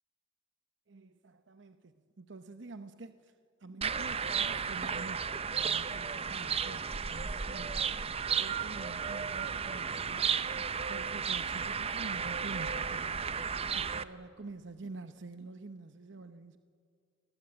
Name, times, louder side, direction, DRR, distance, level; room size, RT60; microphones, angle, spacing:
voice 1, 0.9-3.3 3.6-8.0 8.4-10.3 10.8-13.3 13.7-16.6, right 3 dB, 65° right, 10 dB, 0.8 m, -47 dB
sound 1, 3.8-14.0, right 6 dB, 30° right, 0.7 m, -34 dB
28.5 x 20.0 x 8.7 m, 2.4 s
head